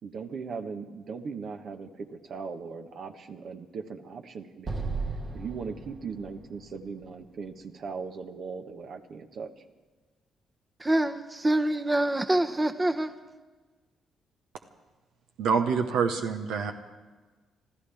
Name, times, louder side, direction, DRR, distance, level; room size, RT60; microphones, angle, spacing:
voice 1, 0.0-4.8 5.3-9.6, right 5 dB, 60° right, 6 dB, 1.2 m, -39 dB
Explosion, 4.7-7.9, right 4 dB, 45° right, 1.6 m, -36 dB
voice 2, 10.8-13.1, right 1 dB, 20° right, 8 dB, 0.9 m, -25 dB
voice 3, 15.4-16.7, right 5 dB, 80° right, 5 dB, 1.0 m, -26 dB
26.0 x 14.5 x 3.5 m, 1.3 s
hypercardioid pair, 50°, 0 cm